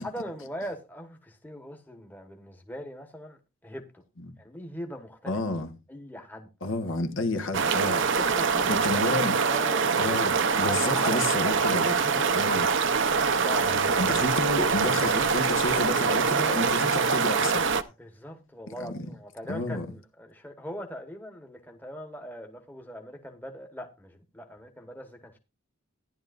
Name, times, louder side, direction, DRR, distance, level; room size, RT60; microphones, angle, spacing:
voice 1, 0.0-3.8 4.4-5.4 5.9-6.5 8.0-10.1 10.6-12.6 13.4-14.1 17.8-25.4, equal, 10° left, 1.3 m, -41 dB
voice 2, 5.3-5.7 6.6-8.0 8.7-9.4 10.0-11.8 12.3-12.7 13.6-13.7 14.0-17.7 18.7-19.0 19.5-19.9, left 2 dB, 65° left, 1.4 m, -30 dB
sound 1, 7.5-17.8, right 5 dB, 55° right, 0.7 m, -24 dB
14.0 x 11.0 x 2.5 m
head